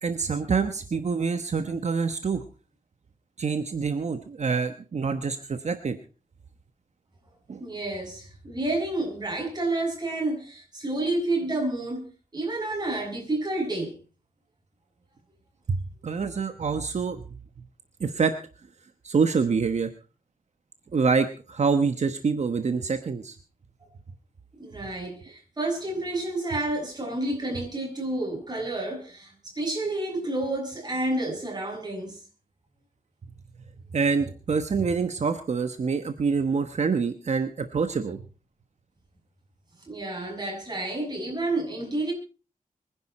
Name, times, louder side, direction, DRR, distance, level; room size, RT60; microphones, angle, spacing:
voice 1, 0.0-2.4 3.4-6.0 7.5-7.6 16.0-17.2 18.0-18.3 19.0-19.9 20.9-23.4 33.9-38.2, right 5 dB, 50° right, 1.2 m, -26 dB
voice 2, 7.6-12.1 12.3-14.0 24.6-32.2 39.8-42.1, right 2 dB, 30° right, 6.9 m, -30 dB
25.0 x 10.5 x 4.3 m
wide cardioid pair, 155°, 15 cm